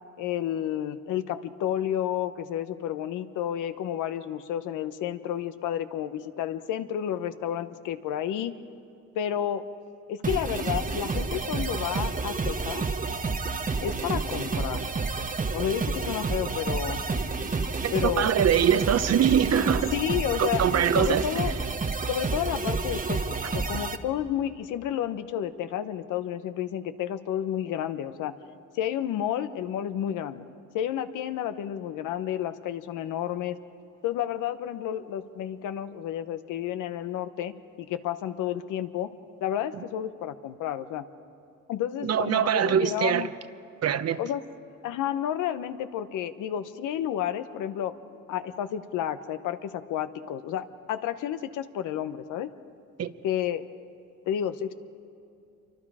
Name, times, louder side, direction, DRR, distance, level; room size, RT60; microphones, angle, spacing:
voice 1, 0.2-8.5 9.1-9.6 10.1-12.9 13.8-14.9 15.5-17.0 17.9-18.3 19.9-21.5 22.1-28.3 28.7-30.4 30.7-33.6 34.0-39.1 39.4-41.0 41.7-43.3 44.2-44.4 44.8-47.9 48.3-52.5 53.2-53.6 54.3-54.7, left 10 dB, 90° left, 11 dB, 1.0 m, -31 dB
sound 1, 10.2-24.0, right 4 dB, 25° right, 1.2 m, -30 dB
voice 2, 17.8-19.9 20.4-21.2 42.0-43.3 43.8-44.2 53.0-53.1, right 9 dB, 55° right, 13 dB, 0.9 m, -23 dB
27.5 x 24.5 x 4.9 m, 2.7 s
cardioid pair, 90°, 30 cm